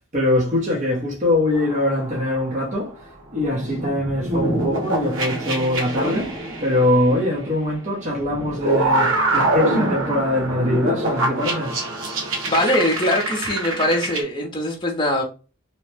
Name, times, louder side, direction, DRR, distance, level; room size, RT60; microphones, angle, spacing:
voice 1, 0.1-3.0 3.3-11.8, left 1 dB, 35° right, 0.7 m, -22 dB
sound 1, 1.5-2.7 3.3-7.6 8.2-14.2, right 2 dB, 90° right, 0.9 m, -25 dB
voice 2, 12.5-15.2, left 1 dB, 25° left, 0.6 m, -22 dB
2.8 x 2.1 x 3.2 m
head